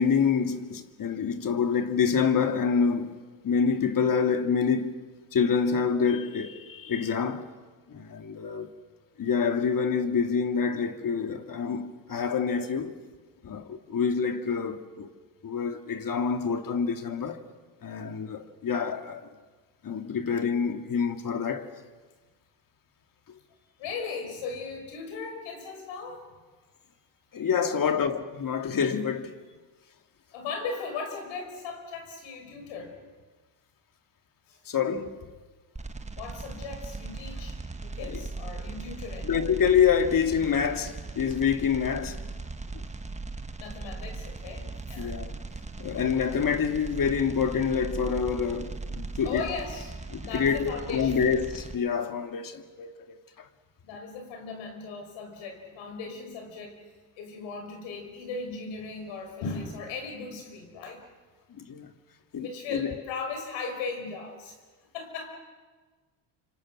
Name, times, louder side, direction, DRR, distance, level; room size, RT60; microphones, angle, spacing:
voice 1, 0.0-3.1 3.4-5.1 5.3-7.4 7.9-8.7 9.2-12.9 13.4-15.1 15.4-17.4 17.8-19.3 19.8-21.7 27.3-29.4 34.7-35.1 38.0-38.2 39.3-42.2 45.0-45.4 45.8-49.4 50.1-53.5 61.5-61.9 62.3-62.9, left 6 dB, 45° left, 2.4 m, -27 dB
voice 2, 23.8-26.3 27.7-28.0 30.3-33.0 34.5-34.6 36.2-39.3 43.6-45.2 49.2-51.2 53.8-56.9 57.2-61.1 62.4-64.6 64.9-65.4, left 4 dB, 80° left, 6.4 m, -37 dB
sound 1, 35.8-51.8, right 3 dB, 15° right, 1.7 m, -38 dB
29.5 x 26.0 x 6.4 m
supercardioid pair, 75°, 45 cm